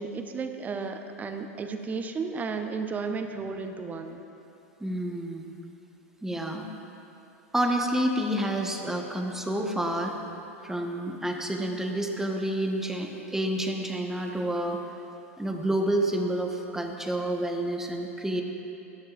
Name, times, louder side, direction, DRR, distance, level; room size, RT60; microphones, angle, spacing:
voice 1, 0.0-4.2, right 4 dB, 20° right, 7 dB, 0.9 m, -33 dB
voice 2, 4.8-5.5 6.2-6.7 7.5-10.2 10.6-14.8 15.4-18.4, right 1 dB, 5° right, 2 dB, 1.2 m, -29 dB
17.5 x 12.0 x 2.5 m, 3.0 s
hypercardioid pair, 95°, 8 cm